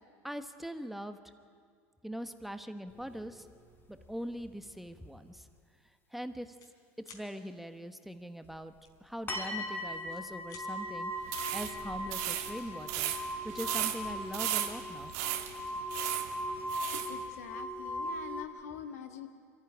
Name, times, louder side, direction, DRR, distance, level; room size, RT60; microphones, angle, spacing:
voice 1, 0.2-1.2 2.0-3.5 3.9-5.5 6.1-6.6 7.1-8.7 9.0-11.1 11.5-13.1 13.4-15.1, equal, ahead, 9 dB, 1.2 m, -41 dB
sound 1, 2.9-3.5 3.8-5.0 5.4-5.5 8.4-8.5 9.3-18.4, equal, 25° left, 4.8 m, -39 dB
sound 2, 4.7-4.9 5.4-5.6 5.8-6.7 7.0-7.3 8.8-9.6 10.0-10.7, left 5 dB, 55° left, 4.1 m, -55 dB
sound 3, 11.2-17.1, right 12 dB, 75° right, 1.7 m, -36 dB
voice 2, 16.9-19.3, left 8 dB, 85° left, 7 dB, 1.6 m, -45 dB
23.5 x 14.0 x 9.9 m, 2.2 s
hypercardioid pair, 85°, 8 cm